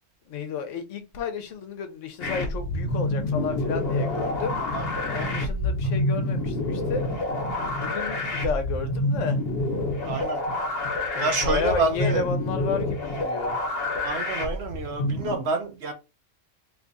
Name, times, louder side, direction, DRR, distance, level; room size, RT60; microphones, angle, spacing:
voice 1, 0.3-4.6 5.1-7.1 7.8-9.4 11.1-13.6, left 5 dB, 75° left, 1.0 m, -32 dB
sound 1, 2.2-15.3, left 1 dB, 50° left, 1.1 m, -28 dB
voice 2, 4.7-5.3 10.0-10.4 11.2-12.3 14.0-15.9, right 3 dB, 60° right, 0.9 m, -28 dB
3.0 x 2.4 x 3.9 m
omnidirectional pair, 1.3 m